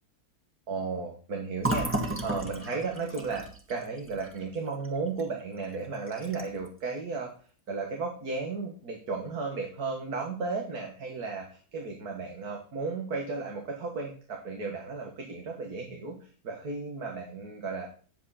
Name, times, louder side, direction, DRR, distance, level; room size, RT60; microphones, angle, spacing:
voice 1, 0.7-7.3 7.7-17.9, right 4 dB, 85° right, 1 dB, 2.2 m, -34 dB
Fill (with liquid), 1.6-5.3 5.6-5.7 6.1-6.7, right 1 dB, 10° right, 1.6 m, -34 dB
10.0 x 8.3 x 4.2 m, 0.40 s
omnidirectional pair, 1.6 m